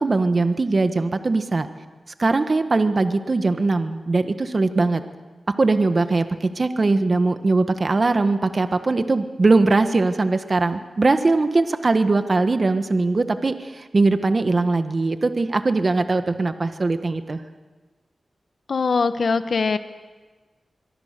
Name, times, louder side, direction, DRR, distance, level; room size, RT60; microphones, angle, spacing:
voice 1, 0.0-1.7 2.2-5.0 5.6-17.4, right 3 dB, 45° right, 9 dB, 1.4 m, -20 dB
voice 2, 18.7-19.8, left 4 dB, 65° left, 10 dB, 1.1 m, -21 dB
25.5 x 23.0 x 6.7 m, 1.3 s
wide cardioid pair, 85°, 0 cm